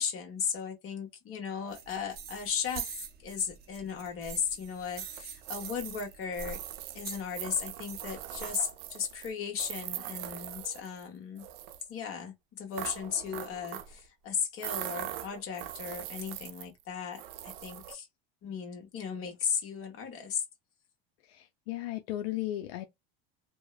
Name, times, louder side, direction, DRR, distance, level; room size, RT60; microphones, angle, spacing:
voice 1, 0.0-6.6 6.9-11.4 11.9-18.1 18.4-20.4, left 7 dB, 45° left, 1.3 m, -36 dB
sound 1, 1.7-8.5, right 7 dB, 35° right, 0.6 m, -45 dB
sound 2, 5.1-11.1 11.4-11.8 12.7-14.0 14.6-16.8 17.1-17.9, right 12 dB, 80° right, 0.5 m, -41 dB
voice 2, 21.3-22.9, left 15 dB, 85° left, 0.5 m, -35 dB
2.8 x 2.1 x 2.2 m
supercardioid pair, 110°, 30 cm